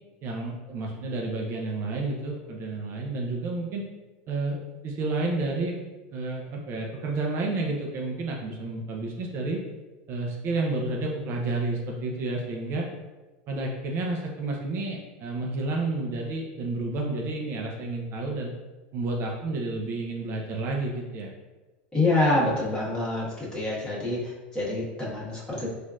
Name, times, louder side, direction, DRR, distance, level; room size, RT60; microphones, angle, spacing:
voice 1, 0.2-3.9 4.3-5.8 6.1-9.6 10.1-12.9 13.5-18.5 18.9-21.3, right 2 dB, 45° right, -1 dB, 0.6 m, -30 dB
voice 2, 21.9-23.3 23.5-25.7, left 2 dB, 15° left, -7 dB, 1.4 m, -26 dB
4.2 x 2.5 x 2.4 m, 1.2 s
supercardioid pair, 110°, 6 cm